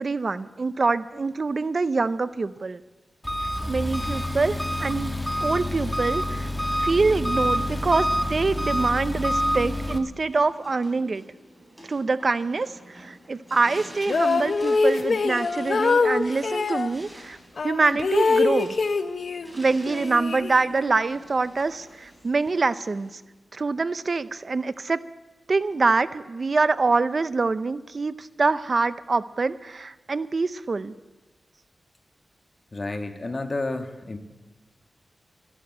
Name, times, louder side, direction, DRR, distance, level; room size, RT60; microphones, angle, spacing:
voice 1, 0.0-2.8 3.7-5.1 5.4-6.5 6.8-11.2 11.9-17.4 17.6-18.7 19.5-23.2 23.5-25.0 25.5-30.9, right 3 dB, 45° right, 14 dB, 0.5 m, -25 dB
Engine, 3.2-10.0, equal, 5° left, 1.5 m, -27 dB
sound 1, 10.2-23.2, right 1 dB, 15° right, 5.0 m, -48 dB
sound 2, 14.0-16.9 17.6-19.5 19.9-21.0, left 4 dB, 65° left, 0.9 m, -24 dB
voice 2, 32.7-34.2, left 2 dB, 35° left, 6 dB, 1.5 m, -30 dB
13.5 x 11.5 x 8.0 m, 1.1 s
wide cardioid pair, 90°, 0 cm